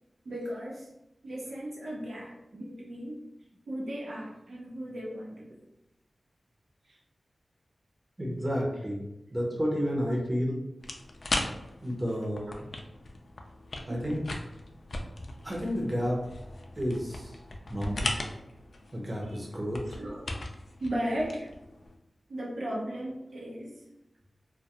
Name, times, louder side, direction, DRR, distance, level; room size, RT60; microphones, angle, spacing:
voice 1, 0.2-0.9 1.2-3.2 3.7-5.6 6.8-7.0 13.9-14.0 19.3-19.4 19.9-20.3 20.8-21.5 22.3-23.8, equal, 90° right, -5 dB, 0.6 m, -36 dB
voice 2, 8.2-9.0 9.3-10.6 11.8-12.7 13.9-14.2 15.4-16.2 16.8-17.4 17.7-18.1 18.9-20.0, equal, 30° right, -2 dB, 0.7 m, -31 dB
sound 1, 10.8-22.0, left 2 dB, 70° left, 0.3 m, -38 dB
2.3 x 2.2 x 2.8 m, 0.90 s
wide cardioid pair, 60°, 0 cm